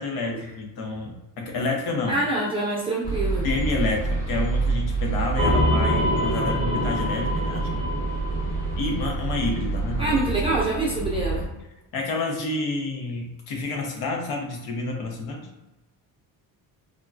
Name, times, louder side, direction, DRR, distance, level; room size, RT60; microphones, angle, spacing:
voice 1, 0.0-2.2 3.4-7.9 8.8-10.2 11.9-15.5, left 3 dB, 85° left, 1 dB, 0.8 m, -29 dB
voice 2, 2.1-3.5 10.0-11.5, right 2 dB, 15° right, -6 dB, 0.3 m, -25 dB
sound 1, 3.0-11.5, right 3 dB, 20° left, 0.9 m, -27 dB
sound 2, 5.4-9.8, left 1 dB, 45° left, 1.0 m, -27 dB
3.6 x 2.2 x 2.4 m, 0.99 s
cardioid pair, 175°, 36 cm